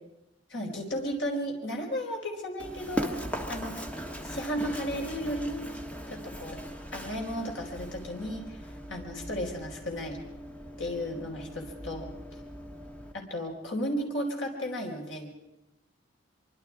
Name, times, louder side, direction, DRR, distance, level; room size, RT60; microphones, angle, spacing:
voice 1, 0.5-3.2 3.5-3.9 4.2-5.6 6.1-6.6 6.9-8.6 8.9-10.2 10.8-12.1 13.1-15.3, equal, 75° left, 0 dB, 4.9 m, -34 dB
Run, 2.6-13.1, equal, 5° left, 1.6 m, -39 dB
24.5 x 24.5 x 4.9 m, 0.93 s
head